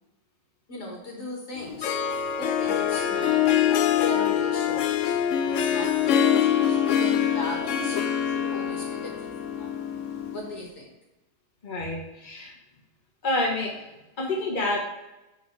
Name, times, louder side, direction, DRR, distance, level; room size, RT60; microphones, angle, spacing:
voice 1, 0.7-1.9 2.4-3.4 4.0-8.0 8.2-9.7 10.3-10.9, left 1 dB, 50° left, -2 dB, 2.0 m, -38 dB
Harp, 1.6-10.5, left 9 dB, 75° left, 0.6 m, -24 dB
voice 2, 11.6-12.6 13.2-13.8 14.2-14.8, left 2 dB, 35° left, -2 dB, 1.1 m, -28 dB
10.5 x 4.1 x 3.2 m, 0.99 s
omnidirectional pair, 1.9 m